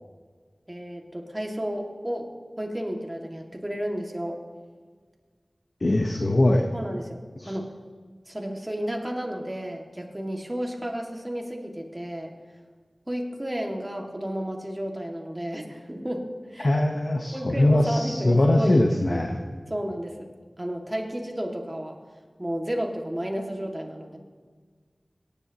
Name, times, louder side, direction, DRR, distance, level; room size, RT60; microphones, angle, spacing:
voice 1, 0.7-2.3 2.6-4.4 6.7-7.7 8.3-12.3 13.1-16.7 17.3-19.2 19.7-20.3 20.6-22.0 22.4-24.2, equal, 20° right, 1 dB, 2.0 m, -32 dB
voice 2, 5.8-6.7 7.4-7.5 16.6-19.4, left 1 dB, 55° left, 3 dB, 0.9 m, -21 dB
18.0 x 10.5 x 2.9 m, 1.5 s
wide cardioid pair, 45°, 0 cm